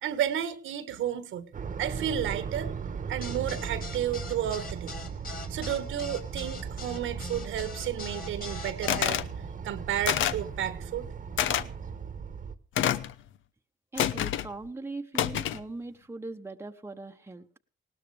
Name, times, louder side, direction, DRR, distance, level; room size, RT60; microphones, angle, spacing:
voice 1, 0.0-1.5 1.8-2.7 3.1-4.9 5.5-9.2 9.6-11.0, right 10 dB, 80° right, 1.5 m, -32 dB
sound 1, 1.5-12.6, right 6 dB, 40° right, 1.2 m, -38 dB
sound 2, 3.2-9.1, left 5 dB, 45° left, 2.8 m, -41 dB
sound 3, 8.9-9.3 10.1-10.5 11.4-11.6 12.8-13.1 14.0-14.5 15.2-15.6, left 11 dB, 75° left, 0.8 m, -27 dB
voice 2, 13.9-17.5, right 2 dB, 15° right, 1.0 m, -40 dB
19.5 x 17.5 x 3.4 m
cardioid pair, 90°, 20 cm